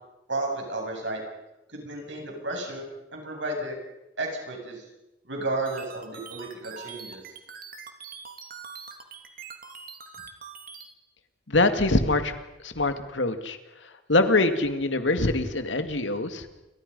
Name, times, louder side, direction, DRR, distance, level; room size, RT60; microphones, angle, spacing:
voice 1, 0.3-1.2 1.7-2.9 3.1-3.8 4.2-4.8 5.2-7.2, right 2 dB, 80° right, 1 dB, 7.9 m, -32 dB
sound 1, 5.7-10.9, right 6 dB, 55° right, 3.1 m, -43 dB
voice 2, 11.5-12.3 12.6-13.6 13.8-16.5, left 2 dB, 90° left, 8 dB, 2.3 m, -24 dB
29.5 x 25.0 x 5.5 m, 0.97 s
head